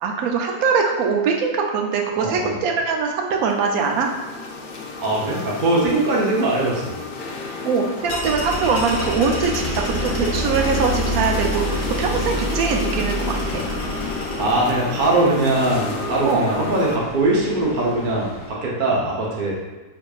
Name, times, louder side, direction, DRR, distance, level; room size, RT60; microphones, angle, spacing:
voice 1, 0.0-4.1 7.6-13.7 16.2-16.4, right 5 dB, 75° right, 2 dB, 1.1 m, -22 dB
voice 2, 2.2-2.6 5.0-6.9 14.4-19.5, right 2 dB, 45° right, -4 dB, 0.7 m, -21 dB
sound 1, 3.2-17.0, left 3 dB, 75° left, 0.5 m, -33 dB
sound 2, 8.1-18.5, left 1 dB, 60° left, 1.3 m, -28 dB
6.7 x 2.7 x 2.3 m, 1.2 s
omnidirectional pair, 1.6 m